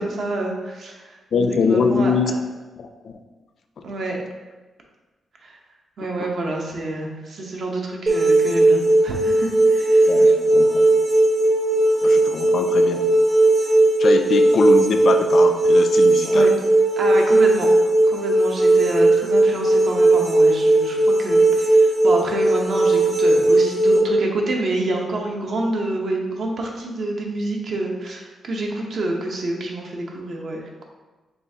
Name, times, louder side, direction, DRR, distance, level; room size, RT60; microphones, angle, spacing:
voice 1, 0.0-1.2 1.5-2.1 3.8-4.2 5.4-5.6 6.0-10.3 16.2-16.5 17.0-17.7 18.1-30.8, right 2 dB, 50° right, 0 dB, 0.7 m, -28 dB
voice 2, 1.3-2.3 2.8-3.1 3.8-3.9 6.2-6.3 10.1-10.8 12.0-13.1 14.0-16.5, left 5 dB, 55° left, 6 dB, 0.3 m, -23 dB
sound 1, 8.1-24.0, right 2 dB, 30° right, 1.0 m, -17 dB
6.6 x 2.4 x 2.7 m, 1.2 s
wide cardioid pair, 145°, 0 cm